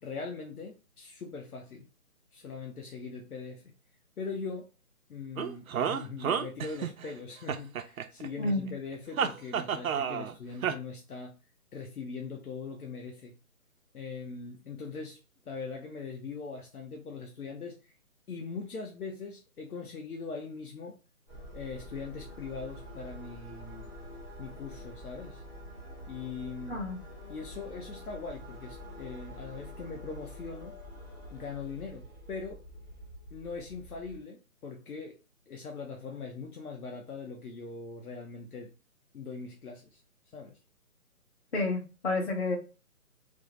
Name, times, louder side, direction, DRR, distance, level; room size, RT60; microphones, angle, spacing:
voice 1, 0.0-1.9 2.3-3.7 4.2-4.7 5.1-11.3 11.7-13.3 13.9-15.2 15.4-18.0 18.3-21.0 21.5-23.9 24.4-25.4 26.1-26.8 27.3-30.8 31.3-32.6 33.3-35.2 35.5-38.7 39.1-40.0 40.3-40.6, left 4 dB, 75° left, 1 dB, 0.9 m, -41 dB
sound 1, 5.4-7.1 7.5-8.5 9.2-10.3 10.6-10.7, right 8 dB, 70° right, 0.5 m, -31 dB
voice 2, 8.4-8.7 26.7-27.0 41.5-42.6, left 2 dB, 45° left, -2 dB, 1.6 m, -30 dB
sound 2, 21.3-34.2, equal, 15° left, 0.8 m, -46 dB
3.4 x 2.0 x 3.2 m, 0.32 s
hypercardioid pair, 155°, 44 cm